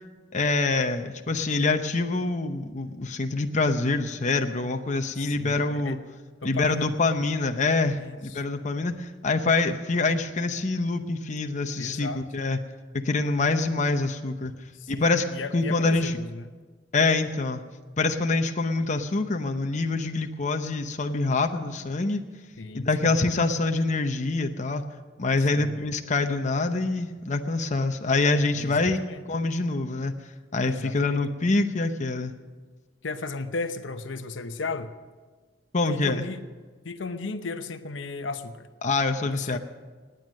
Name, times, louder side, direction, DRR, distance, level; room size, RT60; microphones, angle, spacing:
voice 1, 0.3-6.0 6.4-12.6 13.0-14.5 14.9-16.2 16.9-17.6 18.0-22.2 22.7-24.8 25.2-29.0 29.3-30.1 30.5-32.3 35.7-36.2 38.8-39.6, left 3 dB, 40° left, 6 dB, 0.8 m, -25 dB
voice 2, 5.2-6.0 6.4-6.9 7.9-8.4 11.8-12.2 14.7-16.5 22.6-23.1 25.5-25.8 28.6-29.2 30.6-31.2 33.0-34.9 35.9-36.4 36.8-38.7 39.3-39.6, left 3 dB, 85° left, 9 dB, 0.9 m, -35 dB
18.5 x 9.3 x 6.4 m, 1.4 s
head